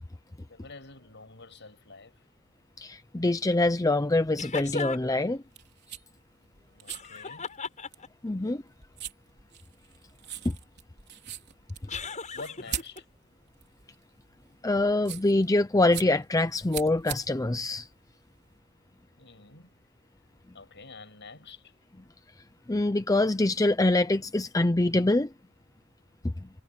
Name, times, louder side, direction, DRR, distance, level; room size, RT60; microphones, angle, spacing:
voice 1, 0.5-2.2 6.7-7.5 12.3-13.1 19.2-19.7 20.5-21.7, left 3 dB, 55° left, 7.4 m, -47 dB
voice 2, 2.8-5.4 8.2-8.6 10.4-10.6 14.6-17.9 22.7-25.3 26.4-26.5, left 2 dB, 15° left, 0.6 m, -25 dB
sound 1, 4.4-5.2 6.9-8.3 11.9-13.0, left 4 dB, 35° left, 7.1 m, -36 dB
sound 2, 5.4-18.6, right 10 dB, 50° right, 4.1 m, -43 dB
head